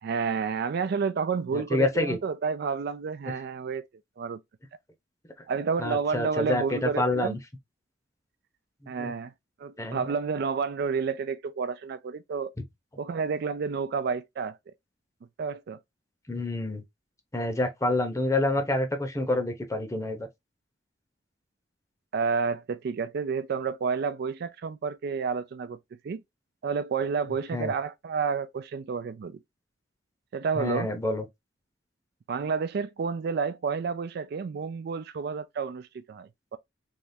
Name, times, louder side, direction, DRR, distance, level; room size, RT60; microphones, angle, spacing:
voice 1, 0.0-3.8 4.2-4.4 5.5-7.4 8.9-9.3 9.6-12.5 13.0-14.6 15.4-15.8 22.1-25.8 26.0-26.2 26.6-29.4 30.3-30.9 32.3-36.6, right 5 dB, 55° right, 0.3 m, -30 dB
voice 2, 1.5-2.2 5.8-7.4 9.0-9.1 9.8-10.0 16.3-16.8 17.3-20.3 27.5-27.7 30.6-31.2, left 2 dB, 15° left, 0.8 m, -27 dB
3.5 x 3.1 x 2.6 m
head